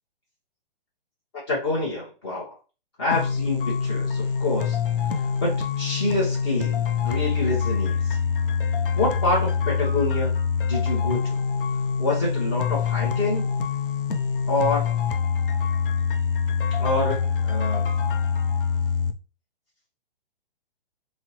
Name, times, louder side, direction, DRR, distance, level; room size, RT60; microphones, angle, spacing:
voice 1, 1.5-2.6 3.0-4.8 5.0-8.2 9.0-10.3 10.7-11.4 12.0-13.4 14.5-14.9 16.8-17.9, left 2 dB, 25° left, -7 dB, 0.8 m, -27 dB
sound 1, 3.1-19.1, left 6 dB, 65° left, 0.5 m, -25 dB
4.2 x 2.0 x 2.9 m, 0.34 s
hypercardioid pair, 170°, 29 cm